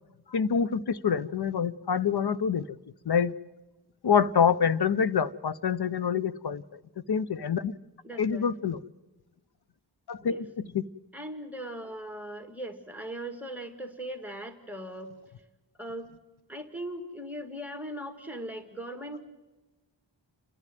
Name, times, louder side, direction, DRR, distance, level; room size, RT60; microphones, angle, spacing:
voice 1, 0.3-2.6 3.1-3.3 4.0-6.6 7.1-7.7 8.2-8.8 10.1-10.8, left 7 dB, 60° left, 15 dB, 0.7 m, -26 dB
voice 2, 8.0-8.5 10.2-10.4 11.1-15.1 15.8-16.1 16.5-19.2, right 1 dB, 5° right, 6 dB, 1.9 m, -39 dB
29.0 x 11.0 x 9.1 m, 1.1 s
wide cardioid pair, 110°, 44 cm